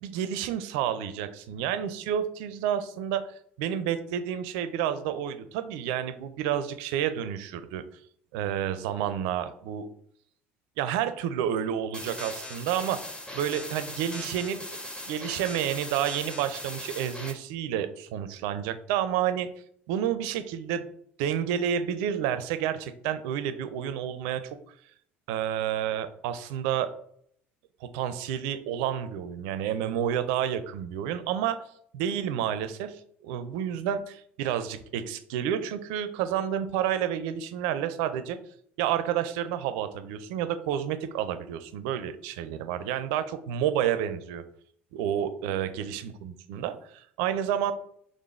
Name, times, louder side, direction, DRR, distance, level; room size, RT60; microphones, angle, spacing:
voice 1, 0.0-3.3 3.6-7.8 8.3-9.9 10.8-13.0 13.3-14.6 15.1-19.5 19.9-20.9 21.2-24.4 25.3-26.9 27.8-31.6 31.9-38.4 38.8-44.4 44.9-47.7, right 9 dB, 60° right, 11 dB, 0.5 m, -30 dB
sound 1, 11.9-17.3, left 1 dB, 15° left, 0.9 m, -39 dB
4.0 x 3.2 x 3.2 m, 0.65 s
figure-of-eight pair, 65°, 7 cm